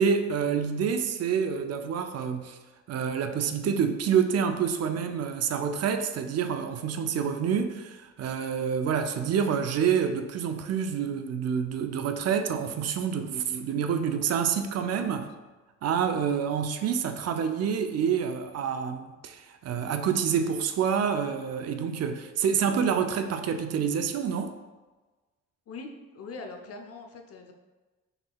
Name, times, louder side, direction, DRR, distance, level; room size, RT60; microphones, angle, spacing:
voice 1, 0.0-2.6 2.9-15.3 15.8-24.5, right 7 dB, 55° right, 7 dB, 0.5 m, -27 dB
voice 2, 25.7-27.5, left 3 dB, 50° left, 3 dB, 0.7 m, -42 dB
5.6 x 3.7 x 2.3 m, 1.2 s
cardioid pair, 90°, 30 cm